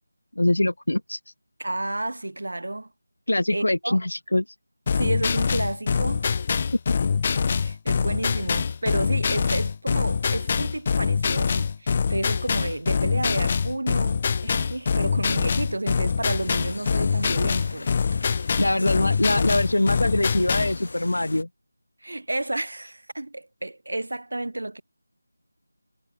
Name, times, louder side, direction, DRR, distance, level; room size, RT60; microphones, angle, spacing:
voice 1, 0.4-1.3 3.3-4.4 18.6-21.5, left 1 dB, 85° left, 1.0 m, -23 dB
voice 2, 1.6-2.9 3.5-4.0 4.9-6.3 7.5-17.9 22.0-24.8, right 2 dB, 75° right, 3.6 m, -31 dB
sound 1, 4.9-20.8, left 5 dB, 25° left, 0.6 m, -24 dB
sound 2, 16.4-21.4, left 3 dB, 50° left, 1.5 m, -40 dB
figure-of-eight pair, 170°, 0 cm